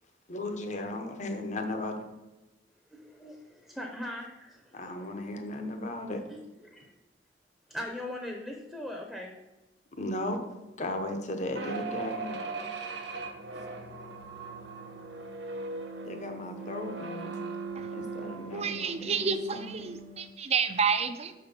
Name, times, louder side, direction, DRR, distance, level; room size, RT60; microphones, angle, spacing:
voice 1, 0.3-2.1 4.7-6.2 10.0-10.5 10.8-12.4 16.0-17.4 17.9-19.8, left 1 dB, 45° left, 5 dB, 0.9 m, -36 dB
voice 2, 2.9-5.1 6.3-6.4 6.6-6.9 7.7-9.3, left 1 dB, ahead, 0 dB, 0.7 m, -40 dB
sound 1, 11.5-20.3, right 4 dB, 80° right, 0.9 m, -39 dB
voice 3, 18.5-21.3, right 6 dB, 40° right, 10 dB, 0.5 m, -29 dB
6.2 x 4.4 x 5.2 m, 1.1 s
head